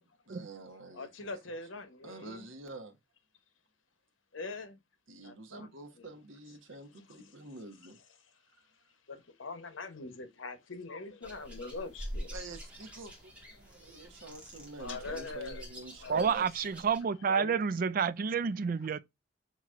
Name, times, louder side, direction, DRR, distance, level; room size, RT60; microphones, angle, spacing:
voice 1, 0.3-1.3 2.0-3.0 5.1-8.0 8.5-8.6 12.3-16.5, right 2 dB, 90° right, 1.1 m, -47 dB
voice 2, 0.9-2.4 4.3-4.8 5.2-5.7 6.0-6.1 7.1-7.4 9.1-12.3 14.8-15.6 16.0-16.3 17.2-17.6, left 3 dB, 80° left, 1.0 m, -42 dB
sound 1, 11.2-17.0, equal, 5° right, 1.8 m, -46 dB
voice 3, 16.1-19.0, right 6 dB, 45° right, 0.4 m, -29 dB
7.3 x 3.0 x 2.5 m
head